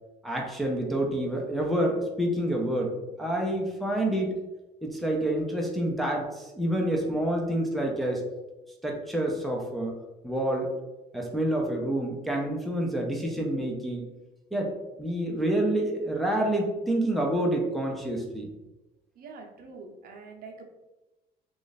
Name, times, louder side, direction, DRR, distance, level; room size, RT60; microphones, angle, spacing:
voice 1, 0.2-2.9 3.2-4.4 4.8-8.2 8.8-10.0 10.2-10.7 11.1-14.1 14.5-14.7 15.0-18.5, right 1 dB, ahead, -1 dB, 0.6 m, -28 dB
voice 2, 19.2-20.6, right 4 dB, 60° right, 2 dB, 0.7 m, -45 dB
3.1 x 2.5 x 4.0 m, 1.1 s
cardioid pair, 110°, 17 cm